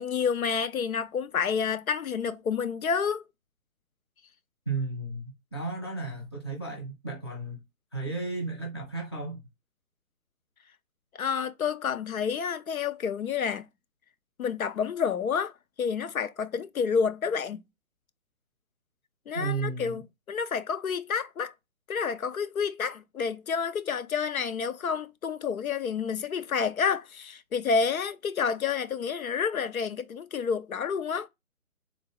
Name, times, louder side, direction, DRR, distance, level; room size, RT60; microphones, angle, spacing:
voice 1, 0.0-3.2 11.1-13.7 14.4-17.6 19.3-20.0 20.3-21.5 21.9-31.3, left 6 dB, 80° left, 0.5 m, -29 dB
voice 2, 4.7-7.6 7.9-9.4 19.3-20.0, right 3 dB, 20° left, 0.6 m, -34 dB
3.5 x 2.2 x 3.4 m
figure-of-eight pair, 140°, 42 cm